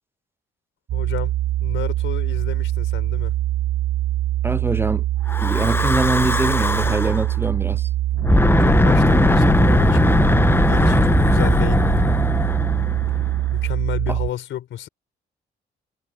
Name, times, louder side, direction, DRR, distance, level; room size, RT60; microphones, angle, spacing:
voice 1, 0.9-3.3 8.5-12.2 13.5-14.9, left 11 dB, 75° left, 4.3 m, -32 dB
sound 1, 0.9-14.3, right 14 dB, 65° right, 0.9 m, -23 dB
voice 2, 4.4-5.0 5.4-7.9, right 2 dB, 10° right, 0.5 m, -23 dB
Breathing / Wind, 5.3-7.2 8.1-13.5, left 2 dB, 10° left, 1.0 m, -18 dB
cardioid pair, 90°, 20 cm